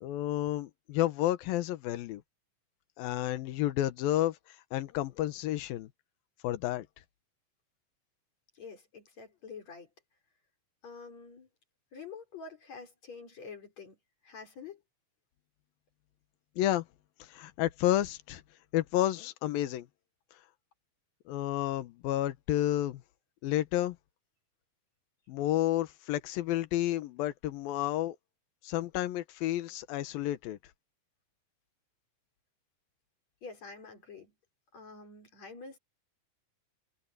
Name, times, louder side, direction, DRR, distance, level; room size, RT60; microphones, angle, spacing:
voice 1, 0.0-2.2 3.0-4.4 4.7-5.9 6.4-6.9 16.6-16.8 17.2-18.4 18.7-19.9 21.3-23.0 23.4-24.0 25.3-28.2 28.6-30.6, left 13 dB, 80° left, 2.9 m, -30 dB
voice 2, 8.6-9.9 10.8-11.5 11.9-14.0 14.2-14.8 33.4-34.3 34.7-35.8, left 4 dB, 50° left, 5.8 m, -47 dB
omnidirectional pair, 4.2 m